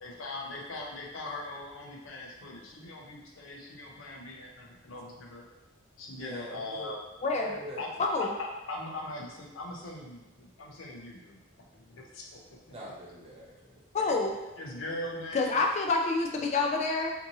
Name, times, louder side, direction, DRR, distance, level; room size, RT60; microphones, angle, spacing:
voice 1, 0.0-5.5 6.0-7.0 7.8-7.9 8.2-11.4 11.7-12.6 14.6-15.6, left 2 dB, 90° left, -1 dB, 0.5 m, -40 dB
voice 2, 6.1-6.9 7.4-7.8 12.7-13.8, equal, 30° right, -4 dB, 0.5 m, -44 dB
voice 3, 8.0-8.3 13.9-14.4 15.3-17.1, left 3 dB, 35° left, 1 dB, 0.3 m, -27 dB
2.6 x 2.6 x 2.6 m, 1.0 s
head